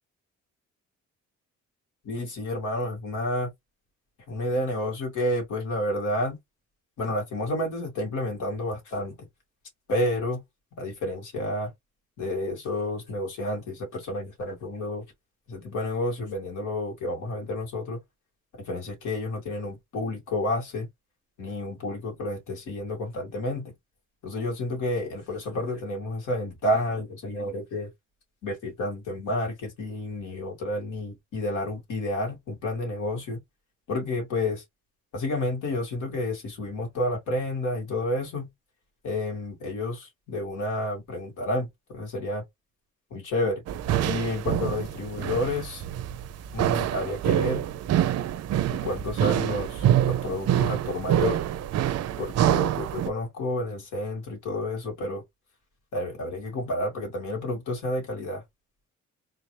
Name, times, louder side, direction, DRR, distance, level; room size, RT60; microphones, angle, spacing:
voice 1, 2.0-3.5 4.3-6.4 7.0-9.2 9.9-10.4 10.8-11.7 12.2-15.0 15.5-18.0 18.6-20.9 21.4-23.7 24.2-27.9 28.4-33.4 33.9-34.6 35.1-38.5 39.0-42.4 43.1-43.6 44.0-45.8 46.5-47.6 48.7-51.4 52.2-55.2 55.9-58.4, left 1 dB, 85° left, 2.4 m, -30 dB
sound 1, 43.7-53.1, right 11 dB, 55° right, 0.5 m, -26 dB
3.7 x 2.7 x 3.2 m
cardioid pair, 90°, 30 cm